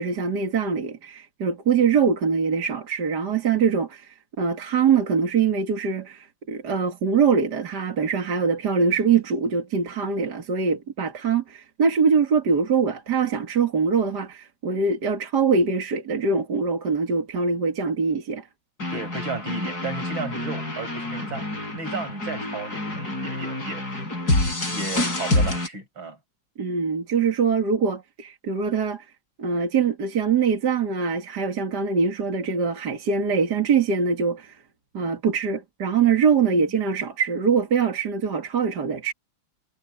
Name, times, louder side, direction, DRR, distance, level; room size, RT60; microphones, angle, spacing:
voice 1, 0.0-18.5 26.6-29.1 29.4-34.6 34.9-39.1, right 5 dB, 55° right, 2.6 m, -23 dB
sound 1, 18.8-25.7, left 2 dB, 50° left, 7.3 m, -27 dB
voice 2, 18.9-21.5 21.8-26.2 36.5-36.6, right 3 dB, 80° right, 7.2 m, -34 dB
omnidirectional pair, 2.1 m